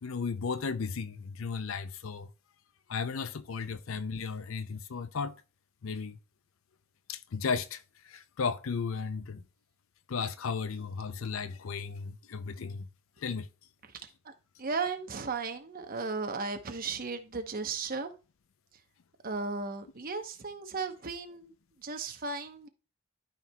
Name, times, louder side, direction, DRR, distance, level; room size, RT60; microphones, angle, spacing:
voice 1, 0.0-2.3 2.9-5.4 5.8-6.2 7.1-7.8 8.1-9.4 10.1-12.9 13.2-13.5, left 5 dB, 70° left, 0.5 m, -35 dB
voice 2, 14.6-18.1 19.2-21.5 21.8-22.7, right 4 dB, 45° right, 0.9 m, -35 dB
13.0 x 4.5 x 2.2 m
head